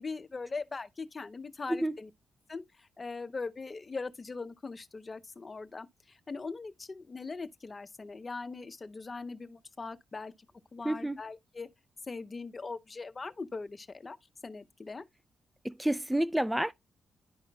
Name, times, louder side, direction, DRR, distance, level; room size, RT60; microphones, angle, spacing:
voice 1, 0.0-2.1 2.5-10.3 10.7-11.7 12.1-14.2 14.4-15.1, left 4 dB, 35° left, 0.7 m, -41 dB
voice 2, 10.8-11.2 15.6-16.7, right 1 dB, 5° right, 0.4 m, -29 dB
11.0 x 5.6 x 2.3 m
cardioid pair, 65°, 0 cm